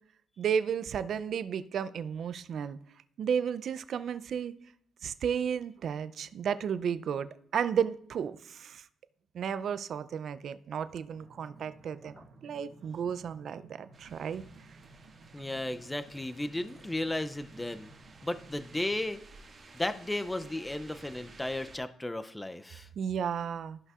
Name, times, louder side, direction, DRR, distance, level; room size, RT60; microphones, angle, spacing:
voice 1, 0.4-2.8 3.2-4.5 5.0-8.8 9.3-14.4 23.0-23.8, right 7 dB, 60° right, 14 dB, 0.4 m, -33 dB
sound 1, 11.1-19.1, right 3 dB, 85° right, 1.1 m, -56 dB
sound 2, 13.9-21.8, right 3 dB, 40° right, 1.8 m, -55 dB
voice 2, 15.3-17.9 18.2-19.2 19.7-22.9, left 1 dB, 10° left, 11 dB, 0.4 m, -34 dB
13.5 x 5.4 x 2.4 m, 0.66 s
cardioid pair, 90°, 0 cm